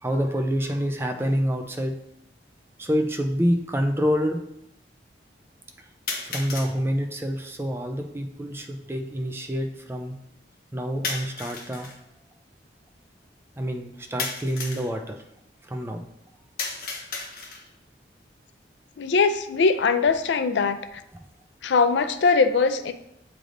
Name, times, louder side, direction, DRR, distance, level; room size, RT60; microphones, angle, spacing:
voice 1, 0.0-2.0 2.8-4.4 6.2-10.2 10.7-11.9 13.6-15.2 15.6-16.0, equal, 15° right, 4 dB, 0.4 m, -27 dB
sound 1, 2.8-2.9 6.1-6.7 11.0-12.0 14.2-14.9 16.6-17.8, left 4 dB, 50° left, 1.0 m, -33 dB
voice 2, 19.0-20.8 21.6-22.9, left 4 dB, 85° left, 10 dB, 0.4 m, -21 dB
7.7 x 3.4 x 3.9 m, 0.81 s
head